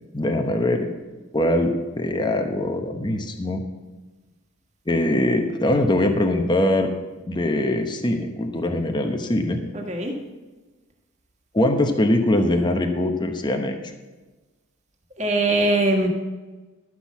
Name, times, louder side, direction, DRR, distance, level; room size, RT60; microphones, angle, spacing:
voice 1, 0.1-0.9 1.3-3.6 4.9-6.9 7.3-9.6 11.5-13.8, left 1 dB, 20° left, 5 dB, 0.9 m, -22 dB
voice 2, 9.7-10.1 15.2-16.1, right 2 dB, 35° right, 1 dB, 1.6 m, -21 dB
12.0 x 6.1 x 7.2 m, 1.2 s
head